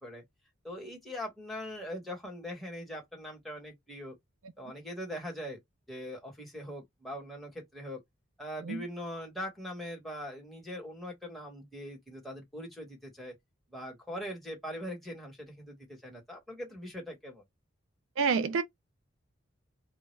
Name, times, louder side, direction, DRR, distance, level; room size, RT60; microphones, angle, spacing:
voice 1, 0.6-4.2 4.6-5.6 5.9-8.0 8.4-13.3 13.7-17.4, equal, ahead, 1.1 m, -41 dB
voice 2, 18.2-18.6, right 5 dB, 80° right, 0.4 m, -28 dB
2.2 x 2.0 x 3.1 m
head